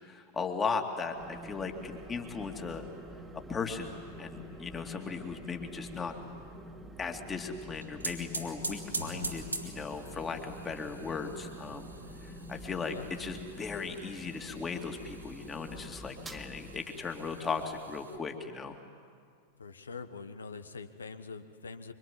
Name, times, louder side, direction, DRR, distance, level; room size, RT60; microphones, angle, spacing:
voice 1, 0.0-2.8 3.5-6.1 7.0-11.9 12.2-18.8, left 5 dB, 20° left, 4 dB, 2.5 m, -37 dB
sound 1, 1.1-16.8, equal, 10° right, 1.9 m, -47 dB
sound 2, 7.6-18.2, right 2 dB, 85° right, 2.9 m, -44 dB
voice 2, 19.6-21.9, left 4 dB, 70° left, 12 dB, 1.3 m, -44 dB
25.5 x 24.5 x 9.5 m, 2.1 s
figure-of-eight pair, 90°, 0 cm